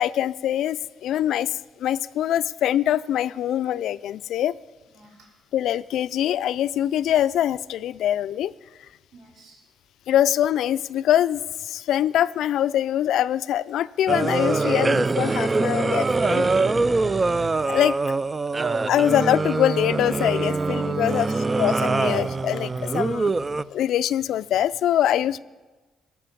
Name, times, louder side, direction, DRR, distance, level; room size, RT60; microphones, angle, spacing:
voice 1, 0.0-1.5 1.8-4.5 5.5-8.5 10.1-16.5 17.7-18.0 18.9-23.3 23.7-25.4, left 11 dB, 80° left, 15 dB, 0.4 m, -23 dB
voice 2, 4.9-5.3 9.1-9.6 16.9-17.2 21.0-21.4, right 1 dB, 70° right, -2 dB, 3.6 m, -47 dB
sound 1, 14.1-23.6, right 3 dB, 25° right, 0.3 m, -23 dB
18.5 x 7.0 x 8.3 m, 1.3 s
cardioid pair, 90°, 0 cm